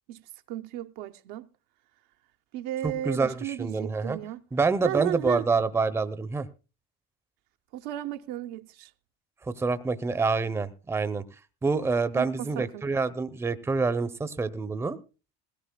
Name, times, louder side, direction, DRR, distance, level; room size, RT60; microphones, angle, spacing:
voice 1, 0.1-1.5 2.5-4.4 4.8-5.5 7.7-8.9 12.1-12.9, right 13 dB, 70° right, 0.7 m, -35 dB
voice 2, 2.8-4.2 4.5-6.5 9.5-11.2 11.6-15.0, right 4 dB, 10° right, 0.6 m, -27 dB
20.5 x 16.5 x 2.2 m
cardioid pair, 125°, 32 cm